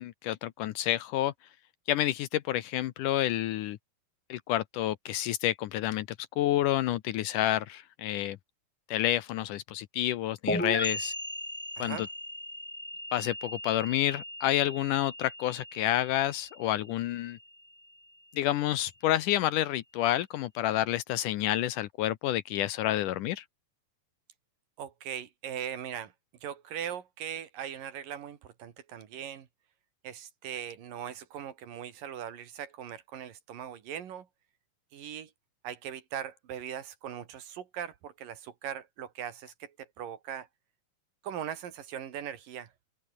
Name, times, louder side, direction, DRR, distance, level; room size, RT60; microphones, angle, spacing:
voice 1, 0.0-1.3 1.9-3.8 4.3-6.1 6.4-8.4 8.9-11.1 11.8-12.1 13.1-17.4 18.3-23.4, left 13 dB, 75° left, 2.2 m, -29 dB
sound 1, 10.5-18.0, equal, 5° left, 2.3 m, -38 dB
voice 2, 11.8-12.1 24.8-26.1 26.4-29.5 30.0-34.3 34.9-35.3 35.6-40.5 41.2-42.7, right 9 dB, 70° right, 3.7 m, -40 dB
omnidirectional pair, 4.1 m